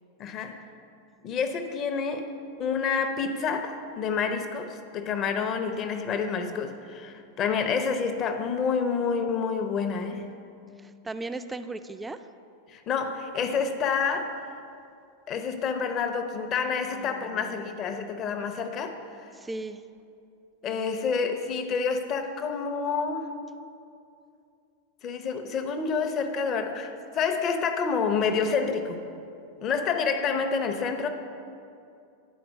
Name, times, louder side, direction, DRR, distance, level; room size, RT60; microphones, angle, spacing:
voice 1, 0.2-0.6 1.2-2.3 2.6-10.3 12.7-14.4 15.3-18.9 20.6-23.3 25.0-29.1 29.6-31.1, left 5 dB, 35° left, 6 dB, 0.6 m, -28 dB
voice 2, 10.8-12.3 16.9-17.8 19.3-19.8, right 2 dB, 10° right, 10 dB, 0.3 m, -37 dB
10.0 x 4.3 x 5.3 m, 2.5 s
figure-of-eight pair, 90°, 0 cm